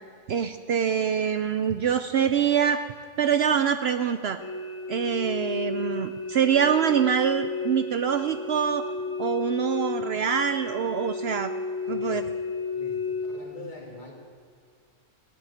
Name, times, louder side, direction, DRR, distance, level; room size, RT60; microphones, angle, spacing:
voice 1, 0.3-2.8 3.2-4.4 4.9-8.9 9.2-11.5 11.9-12.2, right 8 dB, 60° right, 10 dB, 0.8 m, -25 dB
sound 1, 4.4-13.4, left 4 dB, 85° left, 2.7 m, -32 dB
voice 2, 11.8-12.3 12.7-14.1, left 1 dB, 40° left, -1 dB, 2.9 m, -44 dB
15.5 x 9.4 x 9.9 m, 2.2 s
omnidirectional pair, 1.3 m